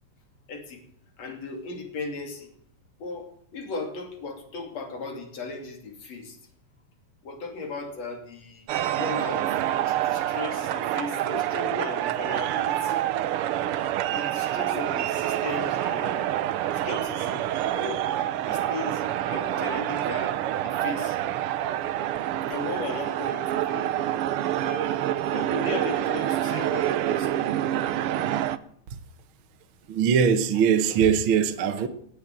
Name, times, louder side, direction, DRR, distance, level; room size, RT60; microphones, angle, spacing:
voice 1, 0.5-0.8 1.2-2.5 3.0-6.4 7.2-8.7 9.0-9.5 9.9-13.0 14.1-16.4 16.7-18.0 18.5-20.4 20.6-21.2 22.5-24.1 24.6-25.0 25.3-27.6, left 3 dB, 60° left, 4.0 m, -36 dB
sound 1, 8.7-28.6, right 12 dB, 85° right, 1.2 m, -27 dB
voice 2, 29.9-31.9, right 7 dB, 60° right, 1.4 m, -21 dB
18.5 x 8.4 x 7.6 m
omnidirectional pair, 3.5 m